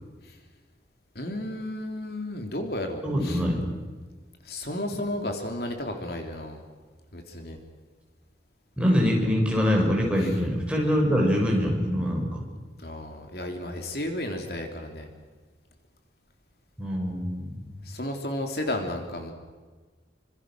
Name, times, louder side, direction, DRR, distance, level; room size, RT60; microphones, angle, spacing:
voice 1, 1.1-3.4 4.4-6.6 7.1-7.6 10.2-10.3 12.8-15.1 17.8-19.3, left 1 dB, 55° left, 4 dB, 3.2 m, -33 dB
voice 2, 3.0-3.5 8.8-12.4 16.8-17.7, equal, 5° right, -1 dB, 6.1 m, -24 dB
28.0 x 26.0 x 6.3 m, 1.4 s
head